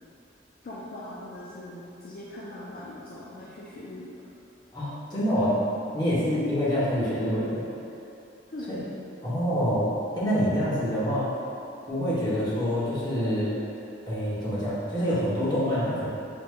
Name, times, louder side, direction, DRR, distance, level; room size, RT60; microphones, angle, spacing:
voice 1, 0.6-4.1 8.5-8.7, left 1 dB, 50° left, -6 dB, 0.4 m, -40 dB
voice 2, 4.7-5.6 5.9-7.6 8.7-8.8 9.2-11.3 11.9-13.6 14.1-16.1, equal, 25° left, -10 dB, 1.0 m, -26 dB
5.2 x 2.1 x 3.2 m, 2.7 s
head